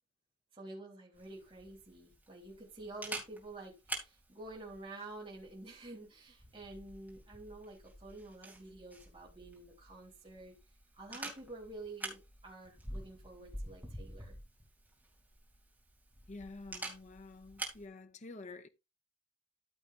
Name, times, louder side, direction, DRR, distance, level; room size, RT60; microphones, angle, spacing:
voice 1, 0.5-10.5 10.9-14.4, right 2 dB, 30° right, 3.3 m, -49 dB
Camera, 1.1-17.8, right 2 dB, 10° right, 2.9 m, -48 dB
voice 2, 16.3-18.7, left 3 dB, 40° left, 0.8 m, -49 dB
13.5 x 7.3 x 2.6 m
head